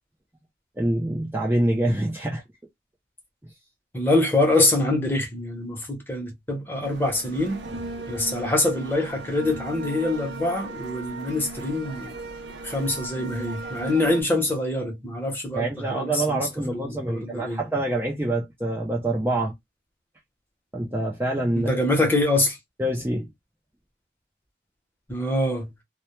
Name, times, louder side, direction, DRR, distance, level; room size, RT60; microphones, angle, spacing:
voice 1, 0.8-2.4 15.5-19.6 20.7-21.7 22.8-23.3, right 1 dB, 10° right, 0.4 m, -26 dB
voice 2, 3.9-7.6 8.1-12.1 12.6-17.6 21.5-22.6 25.1-25.7, left 2 dB, 10° left, 0.7 m, -25 dB
sound 1, 6.8-14.2, right 2 dB, 85° right, 0.5 m, -37 dB
2.1 x 2.1 x 2.9 m
head